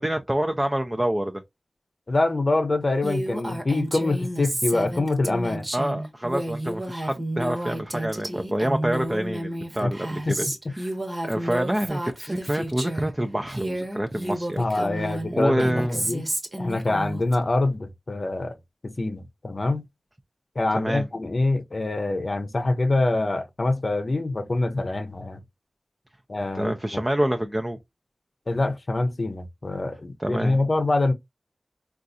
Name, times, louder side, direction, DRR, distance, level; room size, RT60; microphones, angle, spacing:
voice 1, 0.0-1.4 5.7-11.0 11.2-16.0 20.7-21.1 26.6-27.8 30.2-30.6, right 1 dB, 20° right, 0.5 m, -27 dB
voice 2, 2.1-5.7 9.8-9.9 10.3-10.7 14.6-16.3 16.6-18.5 18.8-19.8 20.6-25.4 26.3-27.0 28.5-31.1, left 2 dB, 60° left, 0.6 m, -25 dB
Female speech woman speaking, 3.0-13.1 13.5-17.4, right 1 dB, 40° right, 1.1 m, -31 dB
3.8 x 2.4 x 2.6 m
cardioid pair, 40°, 0 cm